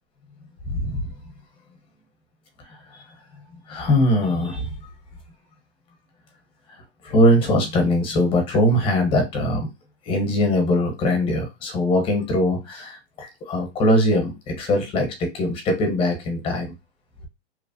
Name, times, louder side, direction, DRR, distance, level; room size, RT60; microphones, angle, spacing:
voice 1, 0.7-1.0 2.7-3.0 3.7-4.7 7.0-9.7 10.1-16.7, left 1 dB, 15° left, 0.8 m, -21 dB
2.9 x 2.0 x 2.6 m
hypercardioid pair, 155°, 35 cm